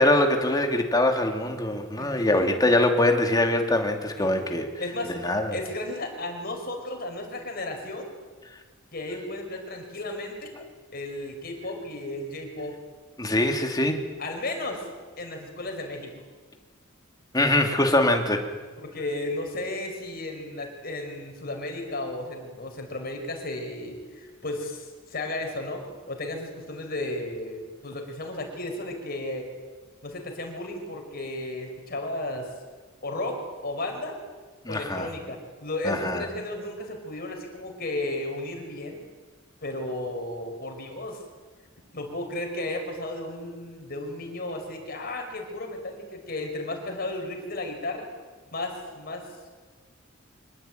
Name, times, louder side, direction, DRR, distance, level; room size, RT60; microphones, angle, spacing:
voice 1, 0.0-4.7 5.1-5.5 13.2-14.0 17.3-18.5 34.6-35.1 35.8-36.2, left 1 dB, 20° left, 4 dB, 2.5 m, -23 dB
voice 2, 2.0-2.5 4.2-4.5 4.8-5.1 5.5-8.1 8.9-10.6 10.9-12.8 14.2-14.9 15.2-16.1 18.8-29.5 30.0-32.5 33.0-34.2 34.7-39.0 39.6-41.2 41.9-48.1 48.5-49.3, left 2 dB, 50° left, 3 dB, 5.3 m, -34 dB
25.0 x 19.5 x 9.2 m, 1.4 s
head